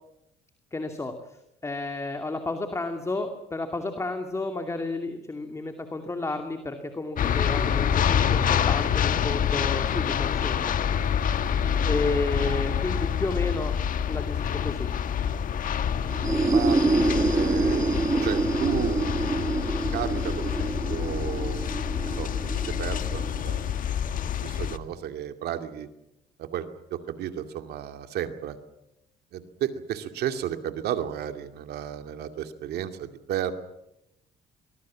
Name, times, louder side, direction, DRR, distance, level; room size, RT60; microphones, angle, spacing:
voice 1, 0.7-1.4 1.6-10.7 11.8-13.8 14.1-14.9, left 2 dB, 15° left, 5 dB, 2.4 m, -32 dB
sound 1, 7.2-24.8, left 8 dB, 55° left, 1.4 m, -27 dB
sound 2, 16.1-23.8, right 3 dB, 20° right, 1.7 m, -27 dB
voice 2, 16.5-17.8 18.2-19.3 19.9-21.6 22.0-22.3 22.8-23.7 24.4-25.9 26.4-28.6 29.3-33.5, right 10 dB, 70° right, 7 dB, 2.4 m, -33 dB
24.0 x 20.0 x 7.5 m, 0.86 s
cardioid pair, 110°, 17 cm